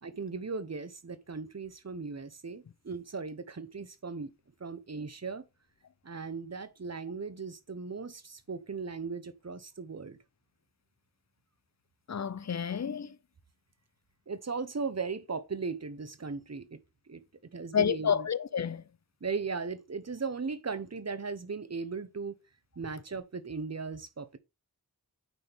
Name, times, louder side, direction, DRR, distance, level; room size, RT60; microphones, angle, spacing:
voice 1, 0.0-4.3 4.6-5.4 6.0-10.2 14.3-16.8 17.1-17.2 17.5-18.3 19.2-22.4 22.8-24.4, right 4 dB, 45° right, 0.9 m, -37 dB
voice 2, 12.1-13.2 17.7-18.8, left 7 dB, 45° left, 0.6 m, -29 dB
9.2 x 4.3 x 3.4 m
wide cardioid pair, 55°, 37 cm